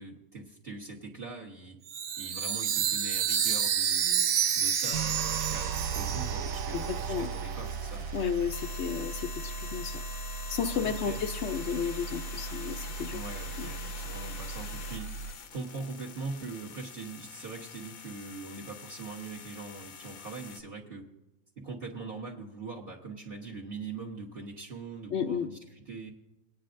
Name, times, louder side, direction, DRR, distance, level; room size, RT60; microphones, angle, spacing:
voice 1, 0.0-1.8 2.2-8.0 10.8-11.2 13.1-15.1 15.5-21.1 21.6-26.1, right 3 dB, 45° right, -2 dB, 1.4 m, -42 dB
Chime, 1.9-7.4, right 8 dB, 60° right, 0.6 m, -29 dB
sound 1, 4.5-20.6, left 7 dB, 85° left, 1.2 m, -46 dB
sound 2, 4.9-15.3, right 6 dB, 85° right, 1.1 m, -37 dB
voice 2, 6.7-7.3 8.1-10.0 10.5-13.2 13.6-13.7 25.1-25.5, left 7 dB, 65° left, 8 dB, 0.8 m, -33 dB
23.5 x 9.6 x 2.6 m, 0.94 s
omnidirectional pair, 1.4 m